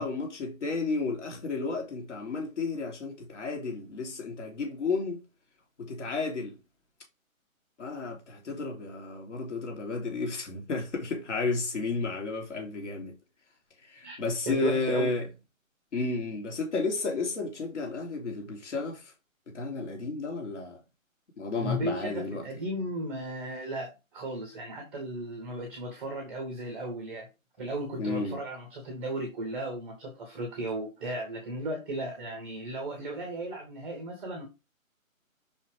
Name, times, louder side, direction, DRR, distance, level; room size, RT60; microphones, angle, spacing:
voice 1, 0.0-5.2 5.8-6.5 7.8-13.1 13.8-15.3 15.9-19.1 19.5-20.8 21.4-22.5 28.0-28.4, left 3 dB, 55° left, 3.2 m, -32 dB
voice 2, 14.5-15.1 21.6-27.3 27.6-34.5, right 1 dB, 5° right, 0.8 m, -35 dB
5.7 x 5.5 x 3.4 m
figure-of-eight pair, 150°, 42 cm